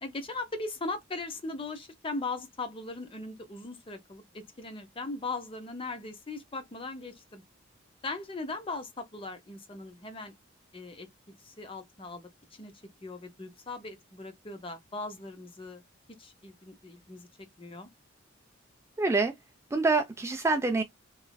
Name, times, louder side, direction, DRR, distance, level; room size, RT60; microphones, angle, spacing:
voice 1, 0.0-7.4 8.0-10.3 10.7-11.1 11.4-12.7 13.0-15.8 16.2-17.3 17.6-17.9, left 3 dB, 25° left, 0.6 m, -39 dB
voice 2, 19.0-19.3 19.7-20.8, right 3 dB, 15° right, 0.3 m, -26 dB
3.1 x 2.5 x 2.2 m
head